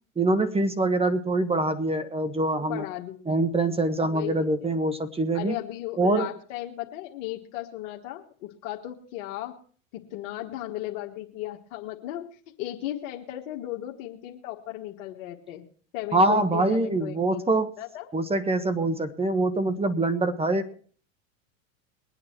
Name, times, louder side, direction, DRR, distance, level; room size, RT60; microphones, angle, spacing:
voice 1, 0.2-2.8 3.3-5.5 6.0-6.3 16.1-17.7 18.1-20.7, right 2 dB, 15° right, 10 dB, 1.3 m, -24 dB
voice 2, 2.7-3.3 4.0-4.7 5.3-9.6 10.1-15.6 15.9-18.1, left 14 dB, 60° left, 2 dB, 1.6 m, -36 dB
21.5 x 8.8 x 4.5 m, 0.43 s
hypercardioid pair, 100°, 40 cm